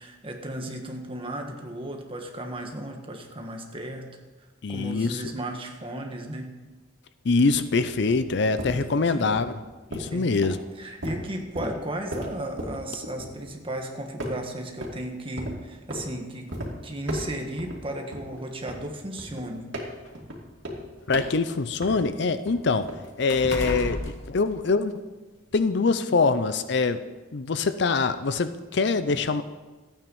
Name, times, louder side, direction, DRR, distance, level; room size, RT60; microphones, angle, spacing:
voice 1, 0.0-4.2 4.7-6.6 8.6-9.3 10.1-10.4 10.8-16.5 16.8-19.7, right 1 dB, 25° right, 3 dB, 1.5 m, -35 dB
voice 2, 4.6-5.2 7.2-9.5 9.9-10.6 21.1-22.9 23.2-24.0 24.3-24.9 25.5-27.0 27.3-29.4, left 4 dB, 60° left, 12 dB, 0.5 m, -24 dB
sound 1, 7.9-13.8 14.2-15.0 15.4-16.1 16.5-16.7 17.0-17.8 18.1-22.2 22.5-24.0, equal, 70° right, 2.6 m, -36 dB
sound 2, 16.5-16.7 17.7-17.8 18.3-18.4 19.3-21.3 21.7-25.1 25.5-25.7, left 1 dB, 90° left, 2.4 m, -37 dB
13.5 x 9.0 x 5.4 m, 1.2 s
head